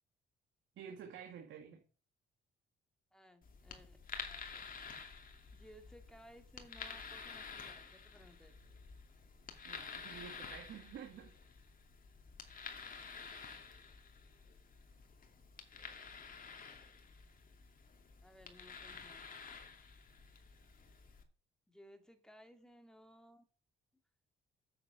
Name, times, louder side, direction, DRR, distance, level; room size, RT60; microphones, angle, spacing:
voice 1, 0.8-1.8 9.6-11.3, right 8 dB, 75° right, 2.3 m, -50 dB
voice 2, 3.1-4.7 5.5-8.6 18.2-19.3 21.7-23.4, equal, 5° left, 2.6 m, -60 dB
sound 1, 3.4-21.2, left 5 dB, 45° left, 2.6 m, -51 dB
9.8 x 8.0 x 6.3 m
cardioid pair, 90°, 20 cm